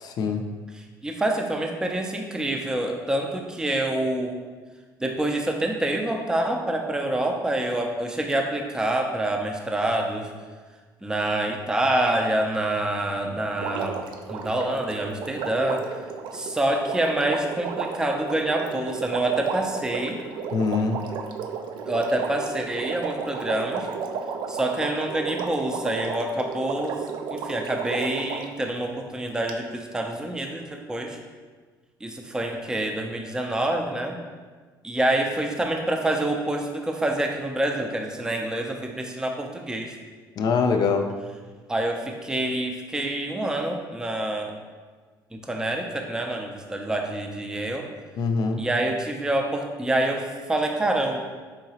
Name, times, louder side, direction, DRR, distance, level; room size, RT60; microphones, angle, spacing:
voice 1, 0.0-0.4 20.5-21.0 40.4-41.1 48.2-48.6, left 5 dB, 55° left, 5 dB, 0.4 m, -23 dB
voice 2, 0.7-4.4 5.0-10.3 11.0-15.9 16.3-20.2 21.9-23.9 24.5-27.0 27.3-31.2 32.0-34.2 34.8-40.0 41.7-44.5 45.3-47.9 48.6-51.3, right 1 dB, 10° right, 2 dB, 0.4 m, -27 dB
Water, 13.6-28.6 29.5-29.6, right 5 dB, 70° right, 0.4 m, -33 dB
4.7 x 2.8 x 2.8 m, 1.4 s
cardioid pair, 100°, 8 cm